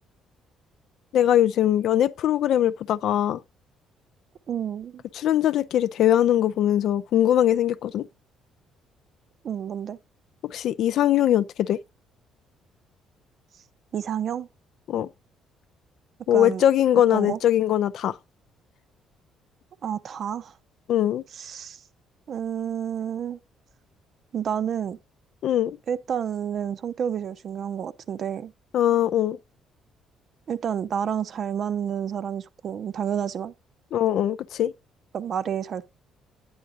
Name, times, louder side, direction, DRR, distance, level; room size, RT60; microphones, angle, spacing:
voice 1, 1.1-3.4 5.2-8.1 10.4-11.8 14.9-15.1 16.3-18.2 20.9-21.2 25.4-25.8 28.7-29.4 33.9-34.7, left 11 dB, 65° left, 0.4 m, -21 dB
voice 2, 4.5-5.0 9.4-10.0 13.9-14.5 16.3-16.6 17.1-17.4 19.8-20.5 21.3-21.8 22.3-23.4 24.3-25.0 25.9-28.5 30.5-33.5 35.1-35.8, right 8 dB, 45° right, 0.5 m, -29 dB
10.5 x 9.5 x 2.5 m
cardioid pair, 130°, 0 cm